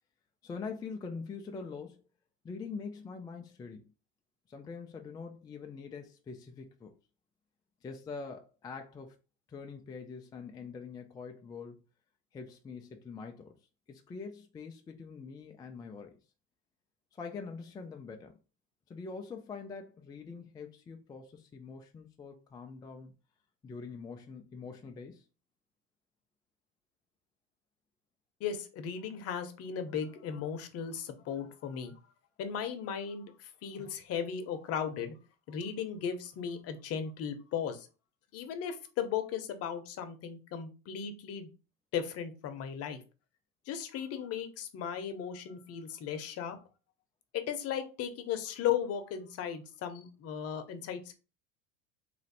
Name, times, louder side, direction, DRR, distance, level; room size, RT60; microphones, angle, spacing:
voice 1, 0.4-2.0 2.4-3.9 4.5-6.9 7.8-9.2 9.5-11.8 12.3-13.6 13.9-16.2 17.1-18.4 18.9-23.1 23.6-25.2, left 5 dB, 15° left, 0.3 m, -44 dB
voice 2, 28.4-32.0 32.4-35.2 35.5-37.9 38.3-41.5 41.9-43.0 43.7-46.6 47.3-51.1, left 8 dB, 45° left, 0.8 m, -36 dB
3.1 x 2.5 x 4.0 m
supercardioid pair, 115°, 33 cm